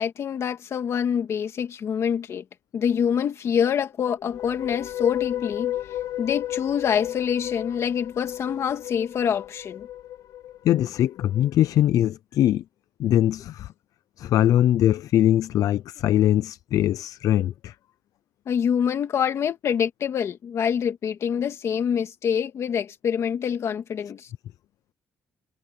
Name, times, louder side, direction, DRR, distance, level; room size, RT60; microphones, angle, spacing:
voice 1, 0.0-2.4 2.7-5.8 6.2-9.9 18.5-24.3, left 8 dB, 50° left, 2.4 m, -26 dB
sound 1, 4.2-11.5, left 13 dB, 90° left, 2.5 m, -33 dB
voice 2, 10.6-12.6 13.0-13.7 14.2-17.7, left 12 dB, 65° left, 0.4 m, -21 dB
cardioid pair, 180°, 6 cm